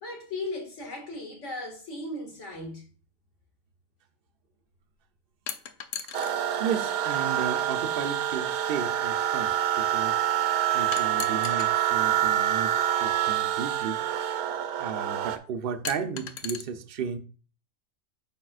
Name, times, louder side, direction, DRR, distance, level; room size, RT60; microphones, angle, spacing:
voice 1, 0.0-2.9, left 2 dB, 55° left, 2.2 m, -37 dB
sound 1, 5.5-6.4 7.6-7.7 10.9-11.7 13.2-13.3 15.9-16.6, left 8 dB, 85° left, 1.2 m, -36 dB
sound 2, 6.1-15.4, right 11 dB, 90° right, 1.2 m, -26 dB
voice 2, 6.6-10.2 10.7-14.0 14.8-17.2, right 7 dB, 50° right, 0.7 m, -34 dB
8.9 x 5.5 x 2.4 m
omnidirectional pair, 1.5 m